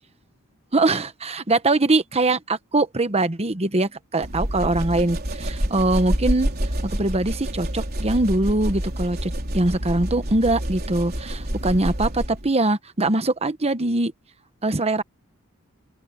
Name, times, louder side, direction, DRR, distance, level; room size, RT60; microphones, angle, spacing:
voice 1, 0.7-6.5 6.8-14.1 14.6-15.0, right 2 dB, 30° right, 1.1 m, -22 dB
sound 1, 4.2-12.5, equal, 45° right, 3.8 m, -28 dB
open air
head